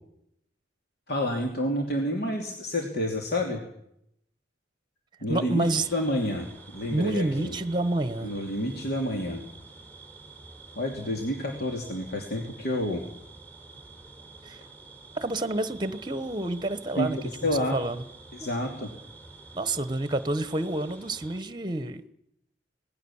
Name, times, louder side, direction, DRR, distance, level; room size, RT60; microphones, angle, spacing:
voice 1, 1.1-3.6 5.2-7.5 8.2-9.4 10.8-13.0 17.0-17.8 18.3-18.9, left 1 dB, 60° left, 1 dB, 2.9 m, -29 dB
voice 2, 5.3-5.9 6.9-8.3 14.4-14.6 15.1-18.0 18.4-18.5 19.5-22.0, right 2 dB, 25° right, 13 dB, 1.3 m, -29 dB
sound 1, 5.6-21.4, right 3 dB, 10° left, 3.8 m, -48 dB
25.5 x 19.5 x 7.3 m, 0.76 s
head